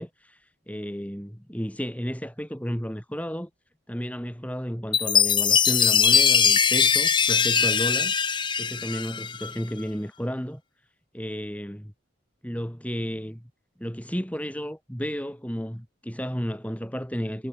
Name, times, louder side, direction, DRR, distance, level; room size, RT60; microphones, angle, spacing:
voice 1, 0.0-3.5 3.9-8.1 8.6-10.6 11.1-11.9 12.4-13.5 13.8-17.5, equal, 5° left, 6.5 m, -32 dB
Chime, 4.9-9.5, left 7 dB, 25° left, 2.4 m, -21 dB
head